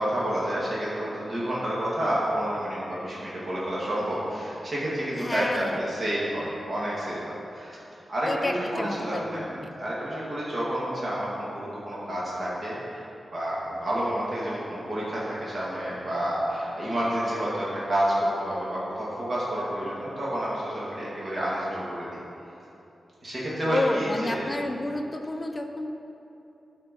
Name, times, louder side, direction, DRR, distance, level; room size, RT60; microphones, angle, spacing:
voice 1, 0.0-7.8 8.1-9.5 9.8-13.0 13.3-22.0 23.2-24.5, equal, 40° right, -7 dB, 2.0 m, -29 dB
voice 2, 5.2-5.8 8.3-9.7 23.7-25.9, left 2 dB, 20° left, 3 dB, 0.6 m, -30 dB
12.0 x 4.5 x 5.2 m, 2.9 s
wide cardioid pair, 125°, 0 cm